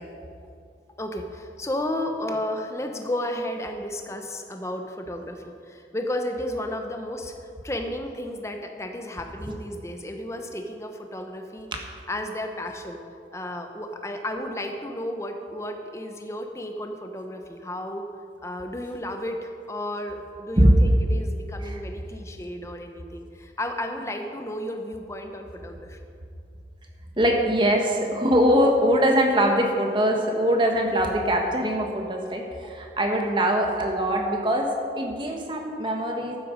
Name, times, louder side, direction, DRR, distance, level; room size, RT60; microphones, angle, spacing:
voice 1, 1.0-11.7 12.1-13.0 13.3-18.1 18.4-26.0, left 1 dB, 15° left, 4 dB, 0.9 m, -33 dB
voice 2, 27.2-36.4, equal, 25° right, 2 dB, 1.3 m, -22 dB
12.5 x 9.4 x 5.2 m, 2.4 s
head